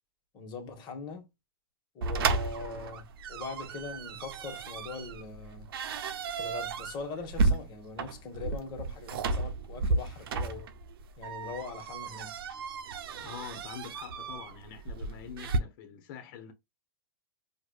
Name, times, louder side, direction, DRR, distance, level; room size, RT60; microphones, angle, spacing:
voice 1, 0.3-1.3 1.9-5.7 6.4-10.7 11.2-12.3, left 4 dB, 35° left, 1.3 m, -41 dB
sound 1, 2.0-15.6, right 3 dB, 70° right, 0.6 m, -33 dB
voice 2, 13.2-16.5, left 7 dB, 55° left, 1.2 m, -45 dB
4.8 x 2.5 x 2.3 m
hypercardioid pair, 115°, 12 cm